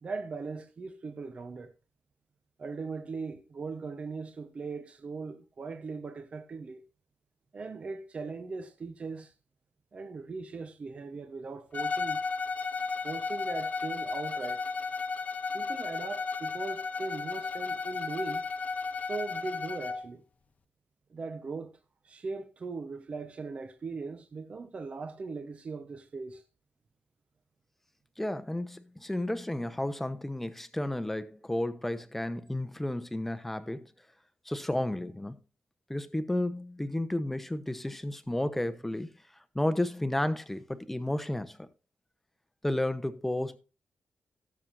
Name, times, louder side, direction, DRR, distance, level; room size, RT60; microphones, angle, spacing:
voice 1, 0.0-1.7 2.6-6.8 7.5-9.3 9.9-12.2 12.8-14.6 15.5-18.4 19.0-20.2 21.1-21.8 22.0-26.4, right 4 dB, 35° right, 0.9 m, -39 dB
Bowed string instrument, 11.7-20.1, left 4 dB, 45° left, 0.9 m, -34 dB
voice 2, 28.2-33.9 34.5-35.4 35.9-39.1 39.5-41.7 42.6-43.6, left 1 dB, 5° left, 0.9 m, -32 dB
17.5 x 7.4 x 2.6 m
wide cardioid pair, 170°, 4 cm